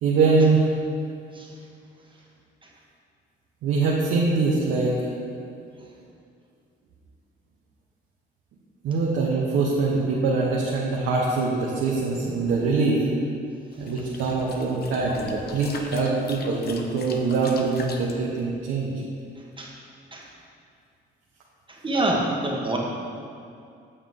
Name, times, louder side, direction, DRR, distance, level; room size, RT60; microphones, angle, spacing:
voice 1, 0.0-0.6 3.6-5.1 8.8-13.1 13.8-18.9, right 3 dB, 90° right, -5 dB, 1.1 m, -23 dB
sound 1, 13.7-18.1, left 4 dB, 55° left, 0.8 m, -41 dB
voice 2, 21.7-22.8, right 2 dB, 25° right, -2 dB, 1.4 m, -26 dB
8.4 x 7.3 x 3.7 m, 2.4 s
cardioid pair, 90°, 20 cm